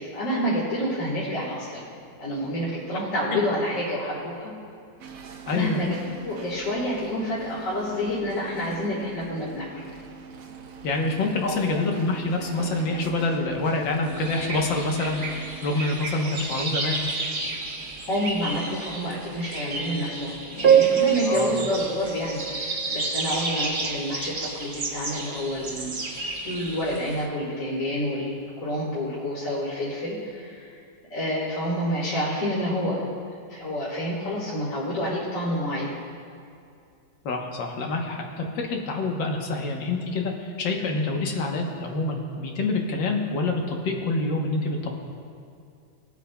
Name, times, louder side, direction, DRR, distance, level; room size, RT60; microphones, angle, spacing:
voice 1, 0.0-1.9 2.2-4.5 5.5-6.0 6.2-9.9 11.4-11.6 18.1-26.0 26.4-30.8 31.1-33.0 33.5-35.9, equal, 45° left, -6 dB, 1.9 m, -28 dB
sound 1, 5.0-15.9, right 6 dB, 60° right, 1.0 m, -43 dB
voice 2, 5.5-5.8 10.8-15.2 15.6-17.0 21.2-21.5 37.3-45.0, left 2 dB, 85° left, 1 dB, 1.8 m, -26 dB
sound 2, 14.1-27.2, right 6 dB, 40° right, 0.8 m, -28 dB
21.5 x 8.2 x 2.3 m, 2.4 s
omnidirectional pair, 2.0 m